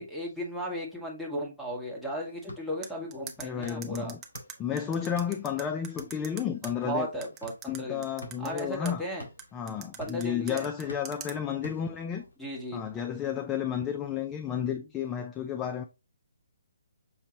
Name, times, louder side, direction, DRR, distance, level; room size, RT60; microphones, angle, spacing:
voice 1, 0.0-4.1 6.8-8.0 8.4-9.3 10.0-10.7 12.4-12.8, equal, ahead, 1.4 m, -35 dB
sound 1, 2.2-12.4, left 1 dB, 75° left, 2.0 m, -50 dB
sound 2, 2.8-6.7 7.2-8.9 9.4-11.3, right 6 dB, 15° right, 0.8 m, -42 dB
voice 2, 3.4-4.2 4.6-7.1 7.7-9.1 9.5-12.2 12.7-15.9, left 8 dB, 15° left, 0.4 m, -32 dB
6.3 x 2.7 x 2.8 m
figure-of-eight pair, 140°, 0 cm